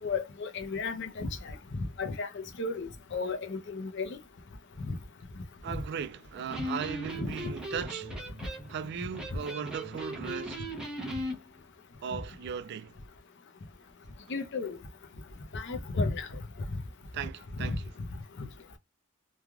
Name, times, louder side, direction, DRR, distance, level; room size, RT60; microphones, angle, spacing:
voice 1, 0.0-1.3 1.7-4.2 4.8-5.0 7.2-7.3 12.1-12.2 14.3-14.8 15.5-16.3 17.6-17.8, left 3 dB, 55° left, 0.6 m, -33 dB
voice 2, 5.6-8.2 8.7-10.7 12.0-12.9 17.1-17.9, right 7 dB, 50° right, 0.3 m, -37 dB
Electric guitar, 6.4-11.4, equal, 5° right, 0.7 m, -38 dB
3.2 x 2.3 x 2.2 m
head